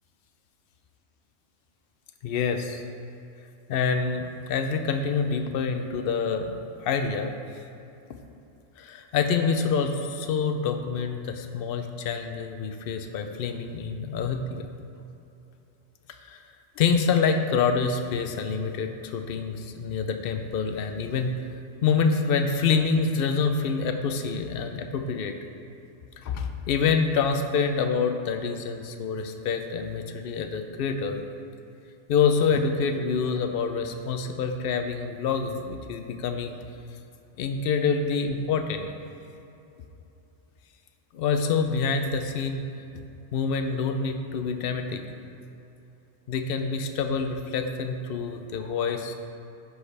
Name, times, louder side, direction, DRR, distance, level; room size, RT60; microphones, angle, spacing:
voice 1, 2.2-2.8 3.7-7.3 8.8-14.7 16.2-16.4 16.8-21.4 21.8-25.3 26.2-31.2 32.1-36.5 37.4-38.9 41.1-42.7 43.3-45.0 46.3-49.1, left 5 dB, 60° left, 6 dB, 0.7 m, -26 dB
9.9 x 6.4 x 3.3 m, 2.8 s
omnidirectional pair, 1.2 m